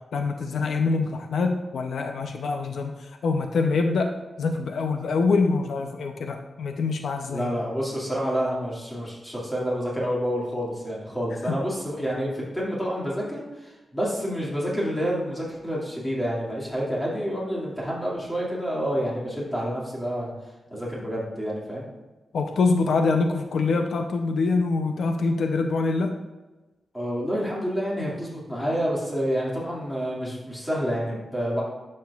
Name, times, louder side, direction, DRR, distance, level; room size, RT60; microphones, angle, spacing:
voice 1, 0.1-7.5 11.5-11.6 22.3-26.2, left 4 dB, 80° left, 5 dB, 0.5 m, -25 dB
voice 2, 7.3-20.3 20.7-21.9 26.9-31.6, equal, 10° left, -5 dB, 2.2 m, -28 dB
10.5 x 6.5 x 2.4 m, 1.1 s
wide cardioid pair, 145°, 0 cm